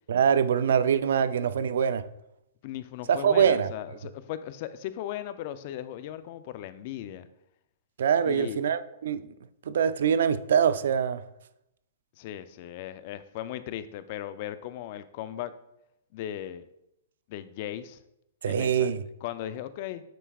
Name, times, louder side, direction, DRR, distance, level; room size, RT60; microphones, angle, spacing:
voice 1, 0.1-2.1 3.1-3.7 8.0-9.3 9.7-11.2 18.4-19.0, right 7 dB, 70° right, 0.4 m, -24 dB
voice 2, 2.6-7.3 8.2-8.6 12.2-15.5 16.1-16.7 17.3-18.0 18.5-18.9 19.2-20.0, left 12 dB, 45° left, 0.4 m, -37 dB
9.0 x 4.6 x 2.3 m
hypercardioid pair, 145°, 0 cm